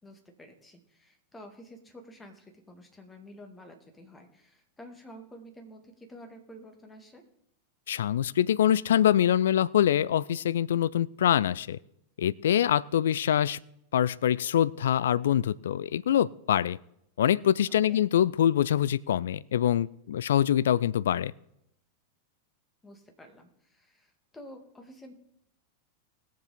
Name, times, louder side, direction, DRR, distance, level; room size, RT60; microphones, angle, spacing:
voice 1, 0.0-7.2 17.7-18.0 22.8-25.1, equal, 10° left, 5 dB, 2.1 m, -50 dB
voice 2, 7.9-11.8 12.2-13.6 13.9-16.8 17.2-21.3, left 10 dB, 60° left, 21 dB, 0.3 m, -24 dB
20.0 x 7.5 x 4.1 m, 0.79 s
figure-of-eight pair, 90°, 0 cm